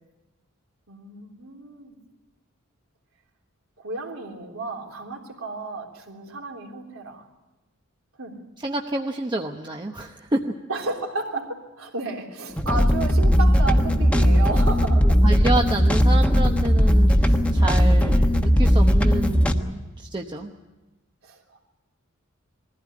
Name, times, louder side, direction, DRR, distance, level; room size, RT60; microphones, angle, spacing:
voice 1, 0.9-2.0 3.8-7.2 8.2-8.4 10.7-15.2 21.2-21.6, right 3 dB, 75° right, 1 dB, 3.6 m, -33 dB
voice 2, 8.6-10.5 15.2-20.5, right 2 dB, 20° right, 2 dB, 0.9 m, -28 dB
sound 1, 12.5-19.5, equal, 5° left, 1.2 m, -18 dB
21.5 x 15.5 x 9.7 m, 1.1 s
head